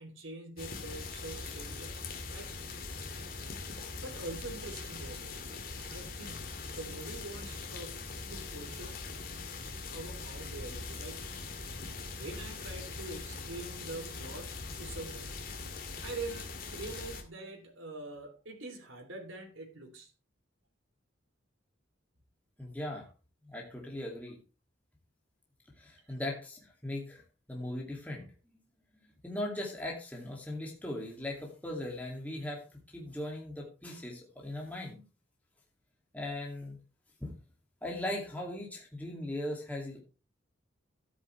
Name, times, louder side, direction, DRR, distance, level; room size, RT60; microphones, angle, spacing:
voice 1, 0.0-1.9 2.3-2.5 4.0-5.6 5.9-9.0 9.9-11.3 12.2-15.3 16.0-20.1, right 2 dB, 85° right, 2 dB, 3.1 m, -44 dB
sound 1, 0.6-17.2, left 4 dB, 45° left, 2.3 m, -42 dB
voice 2, 22.6-23.1 23.4-24.4 25.8-27.2 27.5-28.3 29.2-32.6 32.9-35.0 36.1-36.8 37.2-37.3 37.8-40.0, left 1 dB, 10° left, -2 dB, 2.4 m, -39 dB
12.5 x 9.6 x 3.3 m, 0.34 s
head